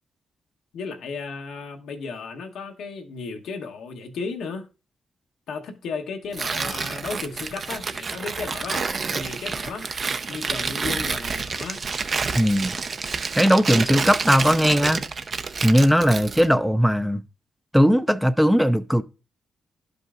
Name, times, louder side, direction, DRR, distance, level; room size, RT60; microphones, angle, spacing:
voice 1, 0.7-4.7 5.5-8.9 9.1-9.9 10.3-11.8, left 5 dB, 85° left, 1.0 m, -34 dB
Tearing, 6.3-16.5, right 4 dB, 50° right, 0.5 m, -28 dB
voice 2, 12.3-12.7 13.4-15.0 15.6-17.2 17.7-19.0, equal, ahead, 0.4 m, -18 dB
11.5 x 5.3 x 2.4 m
cardioid pair, 70°, 0 cm